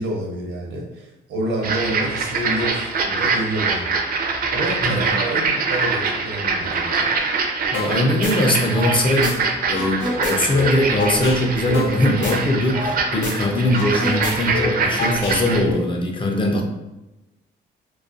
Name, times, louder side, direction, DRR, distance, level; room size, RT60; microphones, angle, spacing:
voice 1, 0.0-3.9 4.5-7.1, right 1 dB, 85° right, -1 dB, 0.7 m, -28 dB
sound 1, 1.6-15.6, right 4 dB, 50° right, 0.4 m, -24 dB
voice 2, 4.8-5.2 7.7-9.4 9.7-16.6, left 1 dB, 25° left, 1 dB, 0.4 m, -21 dB
sound 2, 7.7-7.9 8.2-9.3 9.6-13.0 13.2-13.3 13.6-15.7, left 3 dB, 80° left, 0.7 m, -27 dB
2.3 x 2.2 x 2.5 m, 0.99 s
cardioid pair, 90°, 20 cm